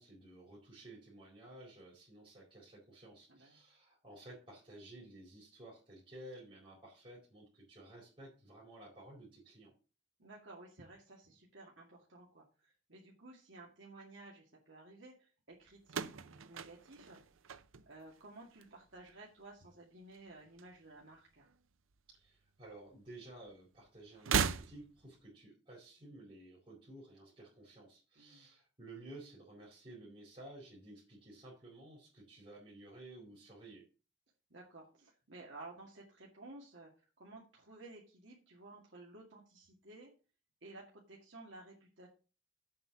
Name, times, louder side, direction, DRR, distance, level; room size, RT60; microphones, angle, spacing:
voice 1, 0.0-9.7 22.1-33.8, right 1 dB, 30° right, -7 dB, 4.4 m, -54 dB
voice 2, 10.2-17.2 17.9-21.5 28.2-28.5 34.5-36.9 37.2-40.1 40.6-42.1, right 2 dB, 65° right, -3 dB, 2.2 m, -54 dB
sound 1, 15.8-18.2 18.5-19.1 20.1-21.2 21.4-21.5 22.7-22.8 24.1-25.2, right 6 dB, 85° right, 0.6 m, -37 dB
7.8 x 5.8 x 7.0 m, 0.35 s
head